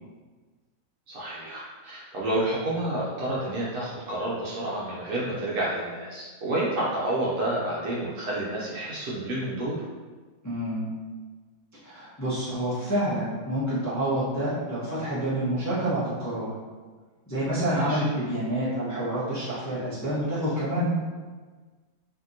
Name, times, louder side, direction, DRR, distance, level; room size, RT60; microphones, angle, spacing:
voice 1, 1.1-9.8 17.6-18.0, right 1 dB, 80° right, -6 dB, 1.1 m, -29 dB
voice 2, 10.4-10.9 11.8-16.5 17.3-20.9, right 1 dB, 20° left, -11 dB, 0.4 m, -28 dB
2.8 x 2.7 x 2.5 m, 1.4 s
omnidirectional pair, 1.7 m